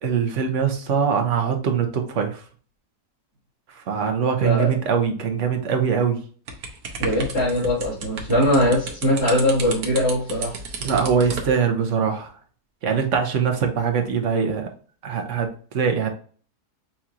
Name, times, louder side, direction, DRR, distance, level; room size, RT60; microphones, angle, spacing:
voice 1, 0.0-2.4 3.9-6.2 10.8-12.3 12.8-14.7 15.0-16.1, right 6 dB, 55° right, 5 dB, 1.1 m, -22 dB
sound 1, 6.5-11.5, right 3 dB, 75° right, 1.4 m, -33 dB
voice 2, 7.0-10.5, left 1 dB, 85° left, -9 dB, 2.5 m, -21 dB
5.8 x 2.9 x 2.5 m, 0.41 s
omnidirectional pair, 1.7 m